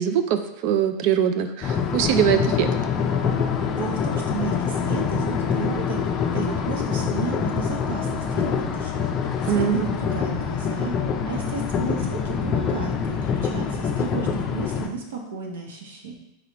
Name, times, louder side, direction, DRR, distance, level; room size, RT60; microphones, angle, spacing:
voice 1, 0.0-2.7 9.4-9.9, right 9 dB, 55° right, 9 dB, 0.4 m, -22 dB
sound 1, 1.6-14.9, left 6 dB, 30° left, 0.5 m, -25 dB
voice 2, 3.7-9.0 9.4-10.9 11.2-16.1, right 4 dB, 90° right, 1 dB, 1.0 m, -33 dB
4.6 x 3.9 x 2.9 m, 0.88 s
supercardioid pair, 135°, 0 cm